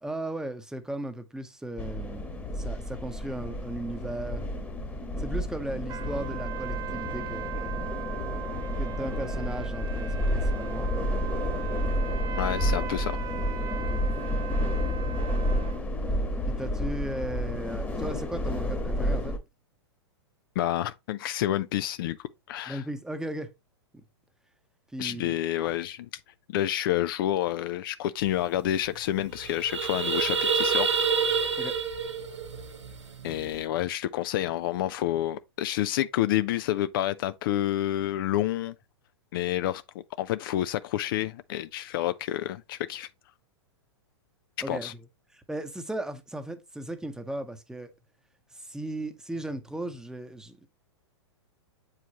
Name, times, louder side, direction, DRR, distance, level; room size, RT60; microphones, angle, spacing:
voice 1, 0.0-4.5 5.2-7.8 8.8-11.1 13.8-14.0 16.5-19.4 22.7-23.5 24.9-25.4 31.6-31.8 44.6-45.0 45.3-47.9 48.5-50.7, right 1 dB, 5° right, 0.9 m, -36 dB
sound 1, 1.8-19.4, equal, 10° left, 1.2 m, -30 dB
sound 2, 5.9-15.8, right 11 dB, 25° right, 0.5 m, -39 dB
voice 2, 12.4-13.2 20.6-22.8 25.0-26.1 26.5-30.9 33.2-38.7 39.3-43.1 44.7-44.9, left 13 dB, 50° left, 0.4 m, -29 dB
sound 3, 28.3-28.4 28.6-28.9 29.2-33.6, right 5 dB, 85° right, 1.2 m, -28 dB
7.9 x 4.8 x 2.9 m
hypercardioid pair, 105°, 14 cm